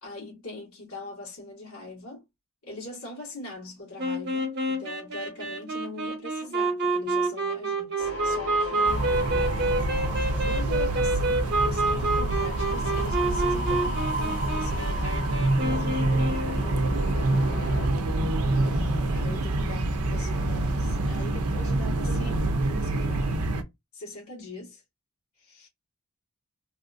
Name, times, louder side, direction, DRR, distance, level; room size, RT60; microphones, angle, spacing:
voice 1, 0.0-2.2 2.6-9.6 10.4-16.8 18.5-23.4 23.9-24.8 25.4-25.7, left 2 dB, 80° left, 1.8 m, -42 dB
sound 1, 4.0-16.6, right 2 dB, 50° right, 1.0 m, -28 dB
sound 2, 8.0-17.9, equal, 55° left, 2.0 m, -36 dB
sound 3, 8.9-23.6, right 2 dB, 90° right, 0.6 m, -27 dB
3.4 x 2.5 x 2.5 m
head